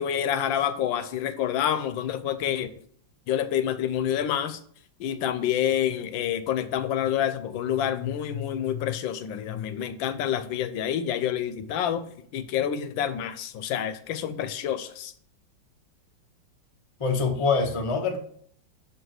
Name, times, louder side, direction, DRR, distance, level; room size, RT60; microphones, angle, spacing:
voice 1, 0.0-2.7 3.3-4.6 5.0-12.0 12.3-15.1, left 10 dB, 80° left, 11 dB, 1.3 m, -28 dB
voice 2, 17.0-18.2, left 4 dB, 45° left, 4 dB, 0.4 m, -24 dB
6.1 x 4.7 x 6.4 m, 0.63 s
omnidirectional pair, 2.1 m